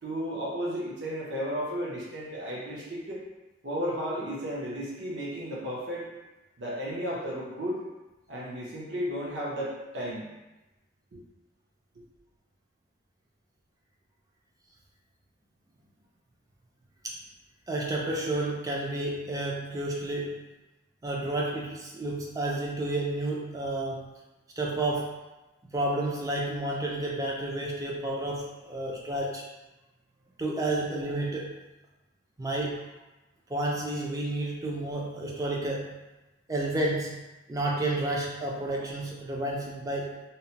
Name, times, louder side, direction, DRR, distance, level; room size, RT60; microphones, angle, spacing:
voice 1, 0.0-3.2 3.6-6.1 6.6-7.8 8.3-10.3 11.1-11.2, equal, 60° right, -5 dB, 0.6 m, -33 dB
voice 2, 17.7-20.4 21.0-24.1 24.6-25.1 25.7-29.4 30.4-31.5 32.4-32.8 33.5-35.9 36.5-37.2 37.5-40.1, right 2 dB, 15° right, -2 dB, 0.3 m, -31 dB
2.8 x 2.1 x 2.8 m, 1.0 s
head